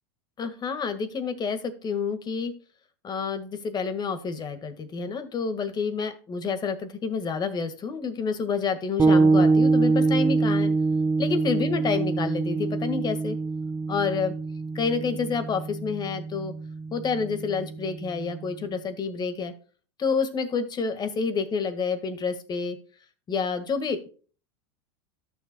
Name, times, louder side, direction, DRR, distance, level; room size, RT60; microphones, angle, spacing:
voice 1, 0.4-2.5 3.0-10.7 11.2-13.4 13.9-14.3 14.7-16.5 16.9-19.5 20.0-22.8 23.3-24.1, left 5 dB, 30° left, 10 dB, 1.7 m, -29 dB
sound 1, 9.0-18.7, right 3 dB, 20° right, 1.3 m, -25 dB
13.0 x 6.9 x 2.2 m, 0.39 s
supercardioid pair, 110°, 15 cm